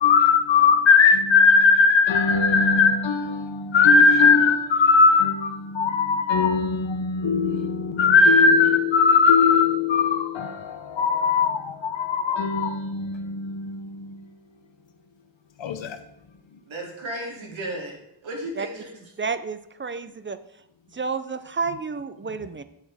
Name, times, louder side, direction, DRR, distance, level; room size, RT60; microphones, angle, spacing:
voice 1, 0.0-14.3 15.6-16.0, left 4 dB, 75° left, 0.9 m, -19 dB
voice 2, 16.7-18.0 18.2-18.9, right 1 dB, 85° right, 3.1 m, -34 dB
voice 3, 19.2-20.4 20.9-22.6, right 5 dB, 25° right, 0.5 m, -30 dB
8.5 x 7.3 x 4.9 m
wide cardioid pair, 140°, 46 cm